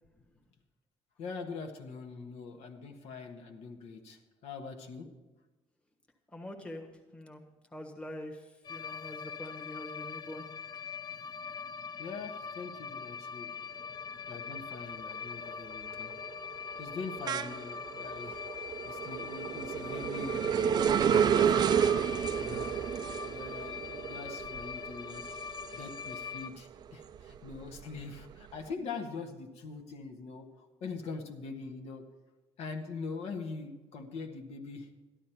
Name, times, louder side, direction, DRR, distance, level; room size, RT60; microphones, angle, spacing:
voice 1, 1.2-5.1 12.0-13.5 14.3-16.1 16.8-21.8 22.4-22.7 23.2-25.3 25.7-32.1 32.6-34.9, left 4 dB, 70° left, 4 dB, 1.4 m, -43 dB
voice 2, 6.3-6.9 7.1-7.4 7.7-10.4, left 1 dB, 10° left, 1 dB, 1.3 m, -44 dB
sound 1, 8.6-26.5, left 6 dB, 40° left, 0.5 m, -42 dB
sound 2, 14.3-14.8 15.1-26.4 26.8-28.5, right 8 dB, 40° right, 0.4 m, -31 dB
13.0 x 11.5 x 4.5 m, 1.1 s
cardioid pair, 160°, 11 cm